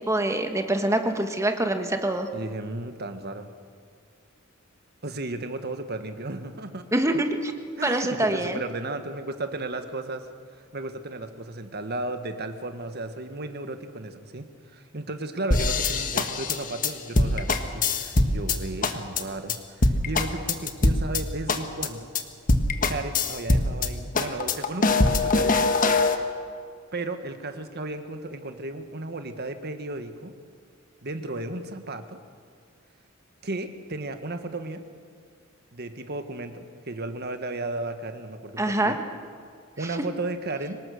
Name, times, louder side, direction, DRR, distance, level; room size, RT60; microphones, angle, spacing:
voice 1, 0.1-2.3 6.9-7.5 7.8-8.6 38.6-39.0, right 1 dB, 15° right, 5 dB, 1.5 m, -25 dB
voice 2, 2.3-3.5 5.0-6.9 7.8-10.3 10.7-14.4 14.7-22.1 22.8-25.7 26.9-30.3 31.0-32.2 33.4-34.8 35.7-39.0 39.8-40.8, right 2 dB, 50° right, 8 dB, 1.6 m, -34 dB
sound 1, 15.5-18.6 18.8-19.2 19.5-19.6 19.8-21.2 21.5-21.9 22.2-22.3 22.5-23.9 24.2-26.2, left 3 dB, 40° left, 1.4 m, -22 dB
24.5 x 19.5 x 6.5 m, 2.1 s
head